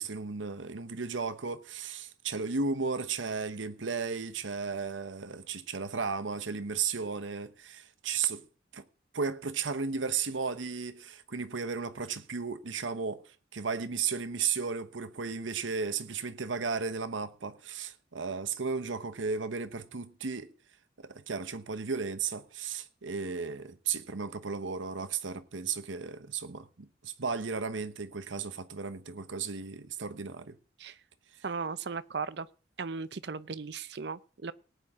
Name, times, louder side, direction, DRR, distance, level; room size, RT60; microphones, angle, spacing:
voice 1, 0.0-8.4 8.7-8.8 9.1-20.5 21.0-30.6, right 5 dB, 90° right, 1.0 m, -34 dB
voice 2, 31.4-32.5 32.8-34.5, right 5 dB, 65° right, 0.6 m, -36 dB
18.5 x 9.3 x 3.6 m
head